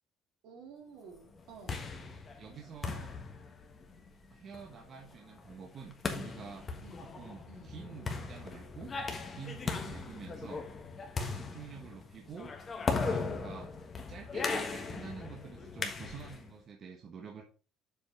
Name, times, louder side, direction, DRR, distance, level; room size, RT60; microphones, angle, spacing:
voice 1, 0.4-1.9 6.8-7.0 7.5-7.7 9.8-10.0 11.4-11.6 13.5-13.7, right 5 dB, 70° right, 0 dB, 3.5 m, -53 dB
sound 1, 1.3-16.5, left 4 dB, 25° left, 1.4 m, -38 dB
voice 2, 2.0-3.1 4.3-6.7 7.0-8.9 9.3-10.6 11.3-12.5 13.0-13.7 14.1-17.4, right 6 dB, 35° right, 1 dB, 1.4 m, -48 dB
7.5 x 5.3 x 5.1 m, 0.36 s
cardioid pair, 160°, 0 cm